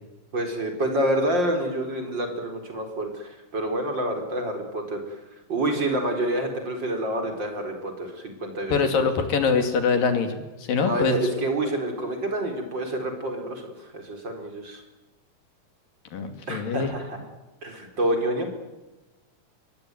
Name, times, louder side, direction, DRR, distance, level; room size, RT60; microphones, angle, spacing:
voice 1, 0.3-5.1 5.5-9.0 10.8-14.8 16.5-17.2 17.6-18.5, right 1 dB, 30° right, 4 dB, 4.9 m, -28 dB
voice 2, 8.7-11.2 16.1-16.9, left 5 dB, 80° left, 7 dB, 4.4 m, -24 dB
24.0 x 21.5 x 9.4 m, 1.1 s
omnidirectional pair, 4.0 m